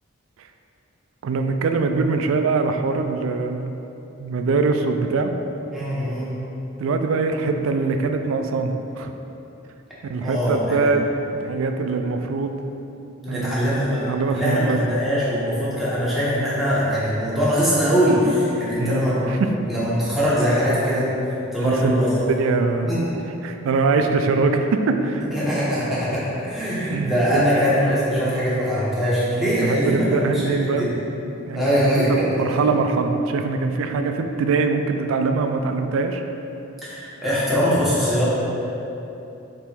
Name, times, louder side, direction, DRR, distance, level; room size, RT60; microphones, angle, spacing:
voice 1, 1.2-3.7 4.2-5.3 6.8-9.1 10.1-11.1 11.3-12.6 13.3-13.7 14.1-14.8 18.8-19.5 21.6-21.9 22.3-22.9 23.4-25.3 26.9-27.4 29.6-30.9 31.5-36.2, right 4 dB, 80° right, 6 dB, 0.3 m, -23 dB
voice 2, 5.7-6.4 10.2-10.9 13.2-19.2 19.7-21.1 21.5-22.3 22.9-23.1 25.3-30.9 31.5-32.6 36.8-38.3, equal, ahead, -10 dB, 1.0 m, -22 dB
3.5 x 2.9 x 4.3 m, 3.0 s
head